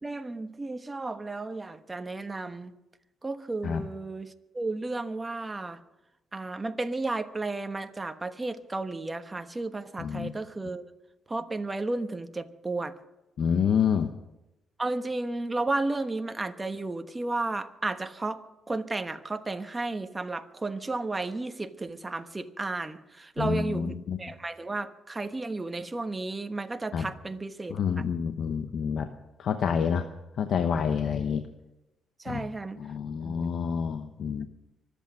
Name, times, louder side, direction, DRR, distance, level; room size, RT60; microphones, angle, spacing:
voice 1, 0.0-2.7 3.2-5.8 6.3-10.9 11.3-12.9 14.8-18.4 18.7-28.0 32.2-32.8 33.2-33.5, right 2 dB, 20° right, 8 dB, 1.2 m, -33 dB
voice 2, 10.0-10.3 13.4-14.1 23.4-24.2 26.9-27.0 27.7-29.1 29.4-30.1 30.4-31.4 32.3-32.5 32.8-34.5, left 7 dB, 60° left, 7 dB, 0.9 m, -28 dB
24.0 x 8.3 x 6.3 m, 0.96 s
cardioid pair, 90°, 0 cm